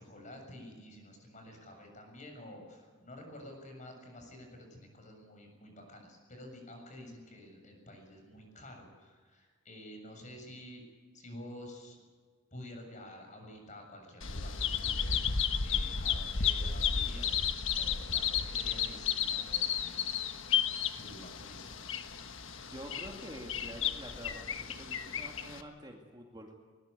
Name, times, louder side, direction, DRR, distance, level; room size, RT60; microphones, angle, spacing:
voice 1, 0.0-10.8 11.1-12.0 12.5-15.2 15.6-17.5 17.8-20.1 21.0-21.7, left 1 dB, 35° left, 3 dB, 7.2 m, -50 dB
Bird vocalization bird call bird song, 14.2-25.6, left 7 dB, 65° left, 1.4 m, -33 dB
voice 2, 22.7-24.5 24.8-26.6, equal, 20° right, 1 dB, 2.3 m, -47 dB
21.0 x 20.5 x 8.3 m, 1.5 s
head